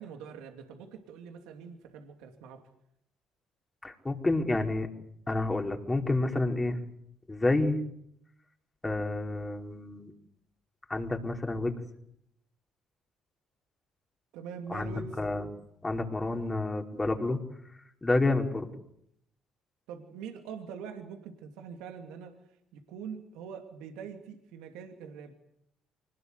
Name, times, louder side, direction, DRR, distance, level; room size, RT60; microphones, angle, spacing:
voice 1, 0.0-2.7 14.3-15.2 19.9-22.4 22.7-25.3, right 6 dB, 75° right, 5 dB, 2.7 m, -43 dB
voice 2, 3.8-4.9 5.3-6.8 7.3-7.8 8.8-10.1 10.9-11.8 14.7-15.4 15.8-17.4 18.0-18.7, left 2 dB, 20° left, 3 dB, 4.6 m, -29 dB
25.0 x 20.0 x 8.2 m, 0.74 s
hypercardioid pair, 55°, 0 cm